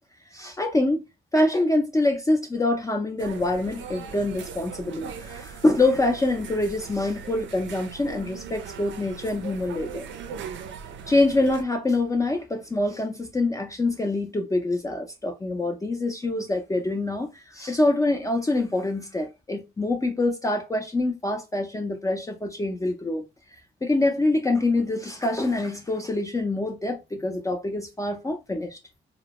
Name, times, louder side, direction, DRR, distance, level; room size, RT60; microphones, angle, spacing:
voice 1, 0.3-1.0 1.3-10.1 11.1-23.2 23.8-28.8, left 2 dB, 15° left, 0.4 m, -25 dB
sound 1, 3.2-11.6, right 6 dB, 70° right, 0.4 m, -39 dB
2.1 x 2.0 x 2.9 m
cardioid pair, 90°, 20 cm